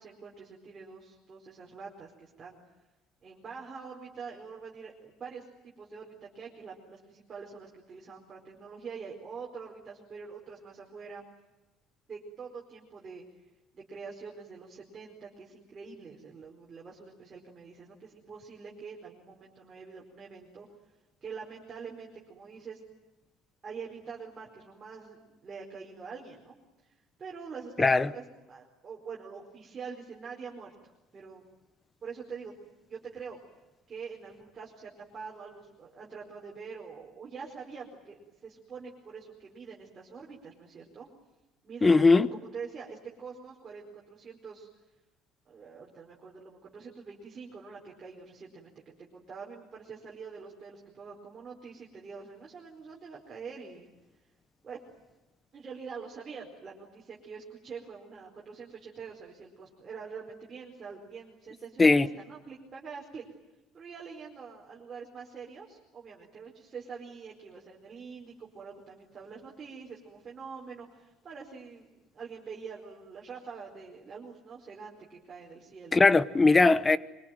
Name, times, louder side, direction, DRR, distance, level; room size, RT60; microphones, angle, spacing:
voice 1, 0.0-2.6 3.2-11.2 12.1-13.2 13.7-20.7 21.2-22.8 23.6-26.6 26.8-26.9 27.2-31.4 32.0-32.5 32.9-33.4 33.9-41.1 41.6-44.7 45.5-48.7 49.0-53.9 54.6-54.8 55.5-63.2 63.7-76.2, right 5 dB, 25° right, 4.7 m, -45 dB
voice 2, 27.8-28.1 41.8-42.3 61.8-62.1 75.9-77.0, left 3 dB, 15° left, 1.0 m, -20 dB
25.0 x 24.5 x 9.2 m
cardioid pair, 170°, 0 cm